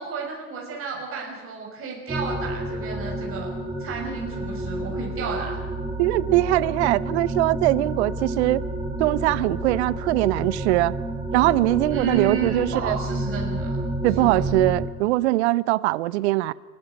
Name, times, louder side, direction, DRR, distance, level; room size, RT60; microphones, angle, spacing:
voice 1, 0.0-3.5 3.8-5.6 11.9-13.8 14.2-14.5, right 5 dB, 30° right, 0 dB, 6.2 m, -31 dB
sound 1, 2.1-14.9, right 1 dB, 10° right, 5.8 m, -30 dB
voice 2, 6.0-8.6 9.0-10.9 11.3-13.0 14.0-16.5, right 17 dB, 50° right, 21 dB, 0.7 m, -21 dB
29.0 x 12.5 x 9.7 m, 1.3 s
figure-of-eight pair, 95°, 45 cm